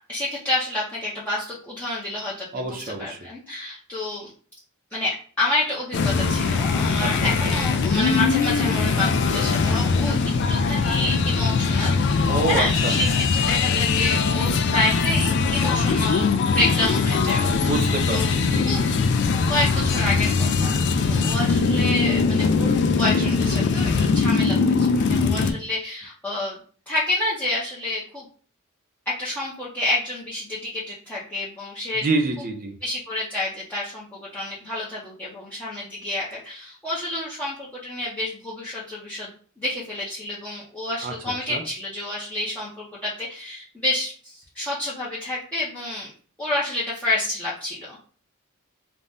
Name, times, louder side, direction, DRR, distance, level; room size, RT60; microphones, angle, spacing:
voice 1, 0.1-4.3 4.9-10.2 10.5-18.3 18.6-18.9 19.5-26.6 26.9-28.3 29.2-32.0 32.8-46.1 46.4-48.0, left 2 dB, 5° left, -9 dB, 0.6 m, -29 dB
voice 2, 2.5-3.2 7.0-7.1 7.4-7.5 12.3-13.0 17.6-18.6 32.0-32.8 41.0-41.1 41.5-41.6, right 3 dB, 40° right, 4 dB, 0.5 m, -26 dB
sound 1, 5.9-25.5, left 4 dB, 55° left, 0.3 m, -21 dB
2.6 x 2.1 x 3.4 m, 0.43 s
head